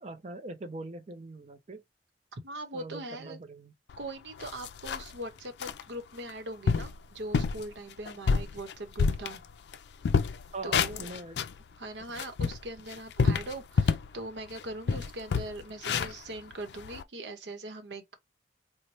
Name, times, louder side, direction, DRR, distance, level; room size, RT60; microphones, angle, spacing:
voice 1, 0.0-1.8 2.7-3.7 10.5-11.4, right 2 dB, 40° right, 0.5 m, -42 dB
voice 2, 2.3-3.4 4.0-9.4 10.6-11.1 11.8-18.2, right 1 dB, 85° right, 0.9 m, -41 dB
sound 1, 3.9-4.0 4.4-5.2 5.6-5.8 6.3-6.4 6.7-7.0 7.3-7.6 8.1-9.8 10.0-11.6 12.0-14.1 14.5-14.6 14.9-17.0, left 5 dB, 75° left, 0.4 m, -28 dB
4.1 x 2.1 x 2.9 m
head